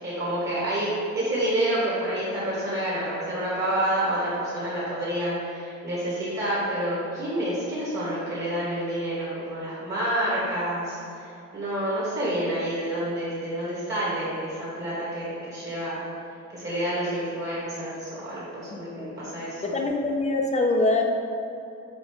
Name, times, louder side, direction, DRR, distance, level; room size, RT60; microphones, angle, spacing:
voice 1, 0.0-16.0 16.5-19.6, right 1 dB, 35° right, -9 dB, 1.4 m, -28 dB
voice 2, 18.7-19.1 19.6-21.0, left 2 dB, 20° left, 2 dB, 0.4 m, -24 dB
5.2 x 3.7 x 5.0 m, 2.7 s
cardioid pair, 170°, 31 cm